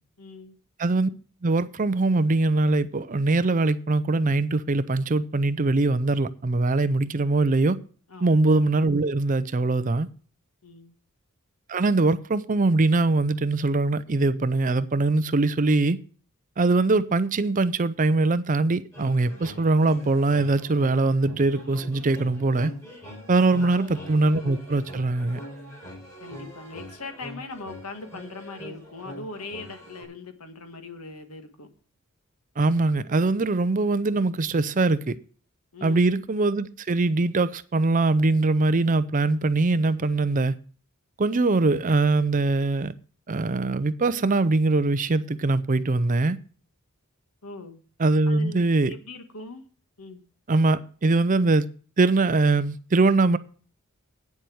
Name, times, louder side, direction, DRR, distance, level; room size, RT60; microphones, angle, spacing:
voice 1, 0.2-0.6 8.1-8.4 10.6-10.9 23.6-23.9 26.2-31.7 35.7-36.2 47.4-47.8 48.3-49.6 50.0-50.2, left 3 dB, 85° left, 1.7 m, -40 dB
voice 2, 0.8-1.1 1.4-7.8 8.2-10.1 11.7-16.0 16.6-22.7 23.3-25.4 32.6-35.2 35.8-40.5 41.2-42.9 43.3-46.4 48.0-48.9 50.5-51.7 52.0-53.4, right 3 dB, 35° right, 0.5 m, -22 dB
sound 1, 18.9-30.0, equal, 15° left, 4.4 m, -43 dB
9.3 x 7.3 x 6.2 m
head